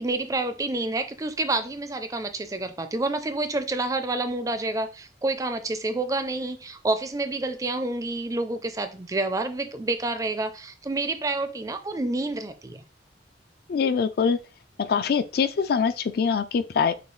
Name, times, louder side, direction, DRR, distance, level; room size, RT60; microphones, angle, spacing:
voice 1, 0.0-12.8, right 2 dB, 20° right, 0.4 m, -28 dB
voice 2, 13.7-14.4 14.8-16.9, left 6 dB, 55° left, 0.3 m, -23 dB
6.8 x 2.3 x 3.1 m
head